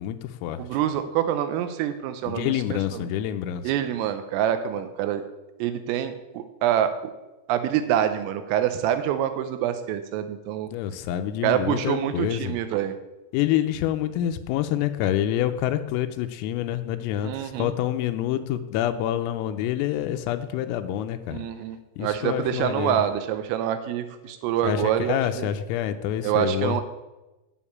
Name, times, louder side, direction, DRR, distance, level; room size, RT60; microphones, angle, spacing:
voice 1, 0.0-0.6 2.2-3.6 10.7-12.5 13.3-21.4 22.0-23.0 24.6-26.8, left 11 dB, 85° left, 8 dB, 3.3 m, -27 dB
voice 2, 0.6-3.1 3.6-5.2 5.6-6.9 7.5-10.7 11.4-12.9 17.2-17.7 21.3-25.5 26.2-26.8, right 10 dB, 85° right, 9 dB, 3.4 m, -26 dB
9.1 x 7.3 x 8.4 m, 1.1 s
omnidirectional pair, 6.0 m